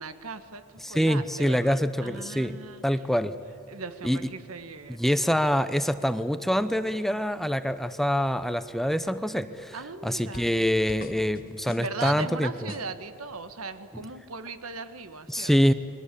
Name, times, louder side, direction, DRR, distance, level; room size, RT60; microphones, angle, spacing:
voice 1, 0.0-2.8 3.7-5.0 9.7-10.6 11.8-15.5, right 3 dB, 80° right, 10 dB, 1.6 m, -38 dB
voice 2, 0.8-2.6 2.8-3.4 4.0-4.2 4.9-9.8 10.0-12.7 15.3-15.7, equal, ahead, 12 dB, 0.7 m, -25 dB
sound 1, 10.3-10.6 10.9-13.0, left 2 dB, 45° left, 1.3 m, -45 dB
29.0 x 22.0 x 8.5 m, 2.6 s
head